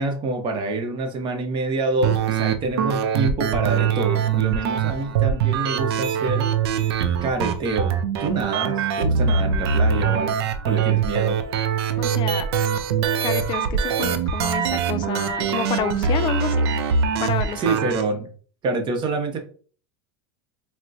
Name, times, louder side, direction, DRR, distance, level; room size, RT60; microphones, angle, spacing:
voice 1, 0.0-6.5 7.2-10.3 10.7-11.4 17.6-18.3 18.6-19.4, right 3 dB, 35° right, 4 dB, 1.0 m, -26 dB
sound 1, 2.0-18.0, right 7 dB, 80° right, 0.5 m, -23 dB
voice 2, 12.0-12.5 13.2-16.7 17.2-17.8, left 9 dB, 35° left, 11 dB, 0.4 m, -29 dB
4.1 x 2.1 x 2.6 m, 0.42 s
supercardioid pair, 115°, 13 cm